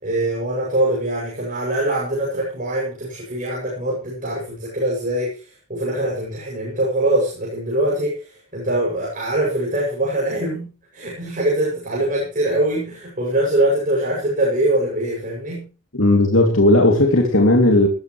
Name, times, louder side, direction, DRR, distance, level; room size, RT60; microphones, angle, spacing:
voice 1, 0.0-15.7, right 1 dB, 40° right, -3 dB, 7.5 m, -23 dB
voice 2, 15.9-17.9, left 1 dB, 65° left, 2 dB, 2.9 m, -15 dB
20.0 x 14.5 x 3.3 m, 0.35 s
head